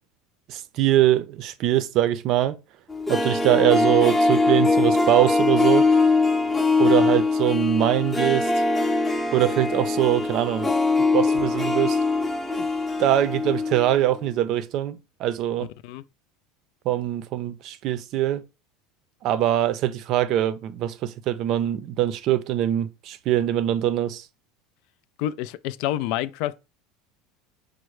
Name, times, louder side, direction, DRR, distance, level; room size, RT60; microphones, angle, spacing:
voice 1, 0.5-2.6 3.1-5.9 6.8-8.5 9.3-10.7 11.1-12.0 12.6-12.7 13.0-15.7 16.9-18.4 19.2-24.2, right 13 dB, 50° right, 0.6 m, -23 dB
Harp, 2.9-13.9 14.2-14.3, left 3 dB, 10° left, 0.7 m, -22 dB
voice 2, 25.2-26.6, left 13 dB, 65° left, 0.3 m, -28 dB
5.2 x 2.1 x 4.7 m
supercardioid pair, 130°, 0 cm